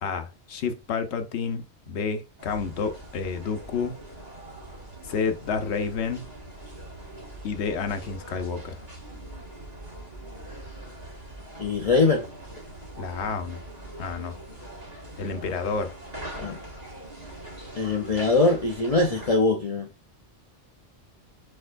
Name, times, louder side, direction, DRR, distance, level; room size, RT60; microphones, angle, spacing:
voice 1, 0.0-4.0 5.0-6.2 7.4-8.9 13.0-13.6 14.0-14.4 15.2-15.9, left 5 dB, 75° left, 1.0 m, -30 dB
sound 1, 2.4-19.4, right 1 dB, 35° right, 1.8 m, -42 dB
voice 2, 11.6-12.2 16.4-16.6 17.8-19.9, left 3 dB, 40° left, 0.6 m, -22 dB
4.6 x 4.3 x 2.5 m
omnidirectional pair, 1.2 m